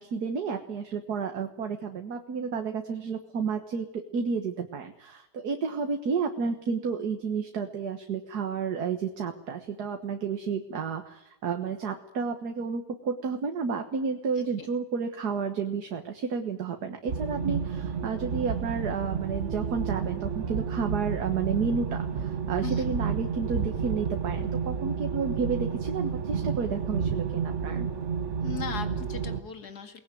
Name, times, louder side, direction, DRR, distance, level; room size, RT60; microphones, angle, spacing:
voice 1, 0.0-27.9, right 5 dB, 80° right, 5 dB, 2.0 m, -31 dB
voice 2, 14.4-14.7 22.6-22.9 28.4-30.0, left 7 dB, 85° left, 7 dB, 2.6 m, -38 dB
sound 1, 17.1-29.4, right 6 dB, 50° right, 1.5 m, -31 dB
22.5 x 19.5 x 9.2 m, 0.94 s
omnidirectional pair, 1.7 m